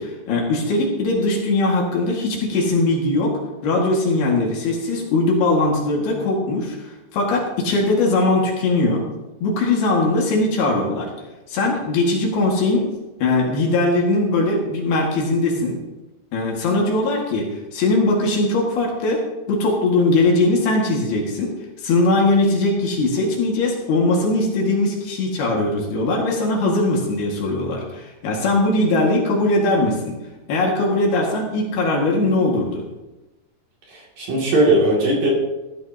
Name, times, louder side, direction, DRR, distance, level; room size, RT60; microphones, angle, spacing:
voice 1, 0.0-3.3 3.6-6.8 7.1-9.0 9.4-11.1 11.5-12.9 13.2-15.8 16.3-19.2 19.5-21.5 21.8-30.2 30.5-32.8, left 2 dB, 65° left, -1 dB, 3.6 m, -20 dB
voice 2, 33.9-35.3, right 1 dB, 55° right, -3 dB, 3.8 m, -18 dB
16.5 x 13.0 x 2.8 m, 1.1 s
omnidirectional pair, 5.3 m